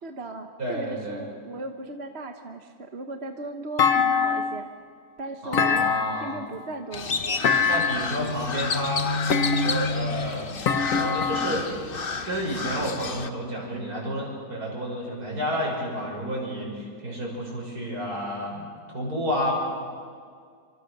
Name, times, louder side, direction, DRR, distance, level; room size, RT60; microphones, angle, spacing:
voice 1, 0.0-4.7 5.2-5.9 6.1-7.5, right 3 dB, 40° right, 6 dB, 1.3 m, -37 dB
voice 2, 0.6-1.2 5.4-6.3 7.7-9.1 9.5-11.7 12.2-19.5, equal, 60° right, -1 dB, 6.9 m, -30 dB
Thump thud, 3.8-4.7 5.5-6.4 7.4-8.2 9.3-10.0 10.7-11.7, left 6 dB, 55° left, 1.4 m, -24 dB
Crow, 6.9-13.3, left 4 dB, 35° left, 1.1 m, -30 dB
27.5 x 25.5 x 6.6 m, 2.1 s
omnidirectional pair, 1.8 m